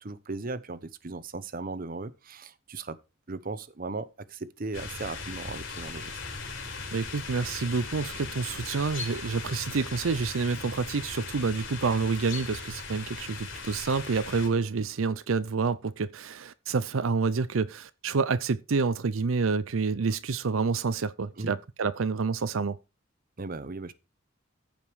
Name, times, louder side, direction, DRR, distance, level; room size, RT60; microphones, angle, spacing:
voice 1, 0.0-3.0 3.3-6.1 21.4-21.6 23.4-23.9, right 3 dB, 45° right, 0.8 m, -37 dB
sound 1, 4.7-14.5, left 4 dB, 70° left, 4.3 m, -38 dB
voice 2, 6.9-22.8, right 4 dB, 85° right, 0.6 m, -28 dB
14.5 x 5.3 x 4.7 m
head